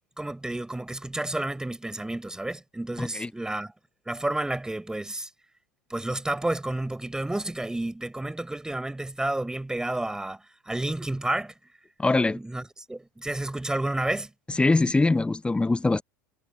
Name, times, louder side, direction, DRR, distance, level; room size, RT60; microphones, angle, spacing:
voice 1, 0.2-3.7 4.1-5.3 5.9-10.4 10.6-11.5 12.3-14.3, right 1 dB, 5° right, 5.1 m, -30 dB
voice 2, 3.0-3.3 12.0-12.4 14.6-16.0, left 3 dB, 10° left, 1.2 m, -22 dB
figure-of-eight pair, 80°, 10 cm